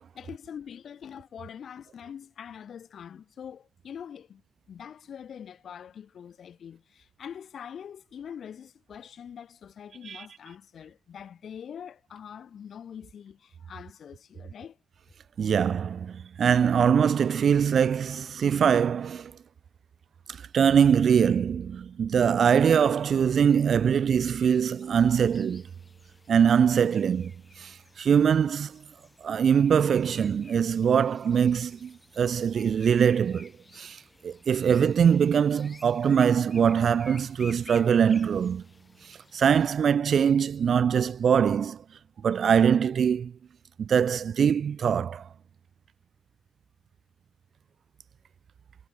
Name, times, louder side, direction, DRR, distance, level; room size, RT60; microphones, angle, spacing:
voice 1, 0.1-4.4 4.7-14.8, left 8 dB, 50° left, 2.6 m, -44 dB
voice 2, 15.4-19.3 20.3-25.6 26.3-27.3 27.6-28.8 29.2-38.6 39.0-41.8 42.2-43.3 43.8-45.3, right 7 dB, 45° right, 0.3 m, -23 dB
sound 1, 22.8-39.7, left 3 dB, 15° left, 3.2 m, -54 dB
wide cardioid pair, 165°, 0 cm